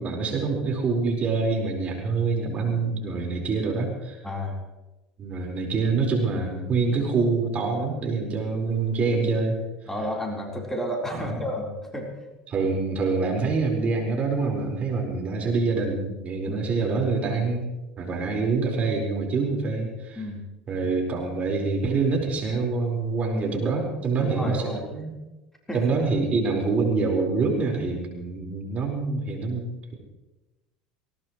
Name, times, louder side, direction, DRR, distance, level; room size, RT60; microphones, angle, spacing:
voice 1, 0.0-4.2 5.2-9.6 11.1-11.4 12.5-17.7 18.0-20.2 20.7-25.1 25.7-29.9, right 4 dB, 35° right, 0 dB, 4.9 m, -26 dB
voice 2, 4.2-4.6 9.9-12.1 16.4-16.6 20.2-20.4 24.2-24.9 25.7-25.8, left 1 dB, 10° left, -1 dB, 4.2 m, -31 dB
19.5 x 19.0 x 3.3 m, 1.0 s
hypercardioid pair, 80°, 4 cm